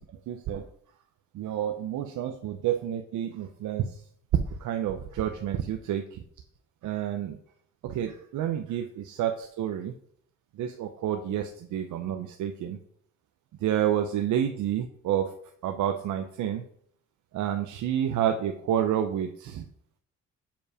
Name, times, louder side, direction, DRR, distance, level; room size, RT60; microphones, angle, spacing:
voice 1, 0.3-0.6 1.3-4.0 4.3-6.2 6.8-7.4 7.8-9.9 10.5-12.8 13.6-15.3 15.6-16.6 17.3-19.6, right 10 dB, 75° right, 5 dB, 0.8 m, -29 dB
7.1 x 5.2 x 4.9 m, 0.62 s
cardioid pair, 90°, 30 cm